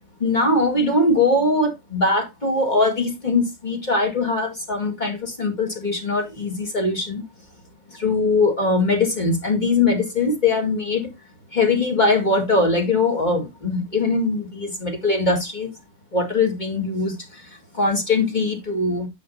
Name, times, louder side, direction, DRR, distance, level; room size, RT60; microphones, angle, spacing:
voice 1, 0.2-7.2 7.9-11.1 11.5-15.7 16.1-19.1, left 3 dB, 20° left, 2.0 m, -21 dB
9.6 x 8.0 x 2.8 m
omnidirectional pair, 2.4 m